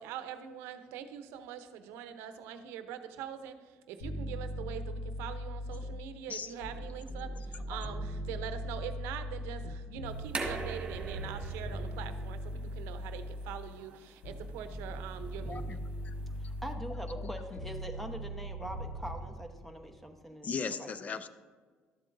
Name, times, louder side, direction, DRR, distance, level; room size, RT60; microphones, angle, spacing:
voice 1, 0.0-15.8, right 9 dB, 85° right, 10 dB, 0.7 m, -43 dB
sound 1, 4.0-6.2 6.6-13.7 14.2-19.2, equal, 75° left, 1.9 m, -40 dB
sound 2, 10.1-16.7, right 3 dB, 30° right, 1.6 m, -44 dB
voice 2, 15.4-15.8 16.0-16.1 17.2-17.3 20.4-21.3, left 5 dB, 35° left, 13 dB, 0.5 m, -38 dB
voice 3, 16.4-20.5 20.8-21.2, equal, 5° left, 5 dB, 1.0 m, -43 dB
12.0 x 7.5 x 2.6 m, 1.5 s
supercardioid pair, 90°, 4 cm